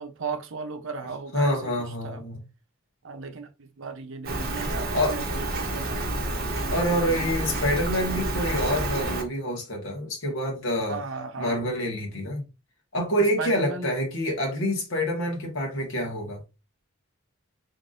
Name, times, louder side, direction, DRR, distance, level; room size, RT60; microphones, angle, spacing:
voice 1, 0.0-2.2 3.0-6.1 10.9-11.7 13.4-13.9, right 4 dB, 65° right, 0.7 m, -36 dB
voice 2, 1.3-2.4 4.9-5.2 6.7-11.0 11.4-12.4 12.9-16.4, equal, 70° left, 1.6 m, -27 dB
Rain, 4.2-9.2, right 2 dB, 45° right, 1.0 m, -29 dB
3.8 x 3.6 x 2.6 m
head